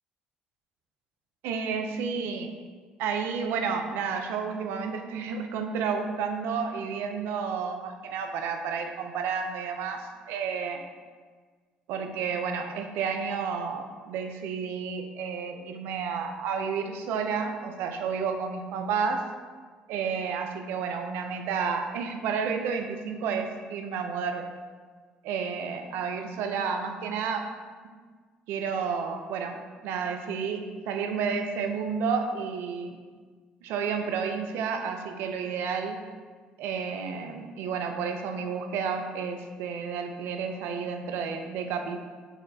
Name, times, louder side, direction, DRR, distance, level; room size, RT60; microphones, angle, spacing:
voice 1, 1.4-2.5 3.0-10.8 11.9-19.3 19.9-24.5 25.2-27.5 28.5-33.0 33.6-36.0 36.6-42.0, right 6 dB, 70° right, 5 dB, 0.4 m, -31 dB
5.3 x 2.1 x 4.0 m, 1.5 s
hypercardioid pair, 60°, 4 cm